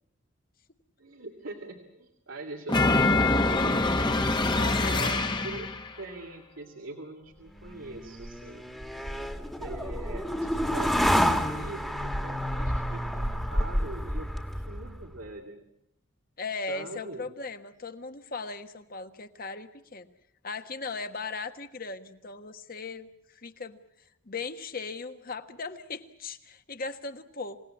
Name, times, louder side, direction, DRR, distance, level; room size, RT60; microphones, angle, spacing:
voice 1, 1.0-4.2 4.8-5.7 6.0-8.7 9.6-11.2 11.5-15.6 16.5-17.3, right 2 dB, 90° right, 2 dB, 2.6 m, -42 dB
sound 1, 2.7-5.9, left 2 dB, 25° left, 1.2 m, -24 dB
voice 2, 4.5-5.4 16.4-20.1 20.4-23.8 24.3-27.6, left 4 dB, 45° left, 8 dB, 1.4 m, -38 dB
sound 2, 7.7-15.1, equal, ahead, 1.6 m, -29 dB
27.0 x 18.0 x 8.6 m, 0.78 s
head